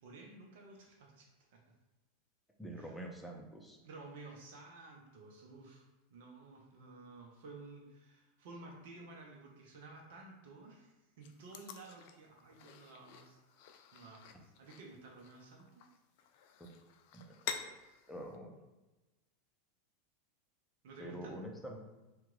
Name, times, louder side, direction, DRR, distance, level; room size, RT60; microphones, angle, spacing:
voice 1, 0.0-1.6 2.7-3.0 3.8-13.4 13.9-15.9 20.8-21.4, right 3 dB, 65° right, -1 dB, 0.6 m, -53 dB
voice 2, 2.6-3.8 17.1-17.2 17.6-17.7 18.1-18.5 21.0-21.8, right 1 dB, 5° left, 0 dB, 0.7 m, -45 dB
sound 1, 11.2-18.4, left 8 dB, 60° left, 0.3 m, -49 dB
2.9 x 2.3 x 3.7 m, 1.1 s
hypercardioid pair, 95°, 0 cm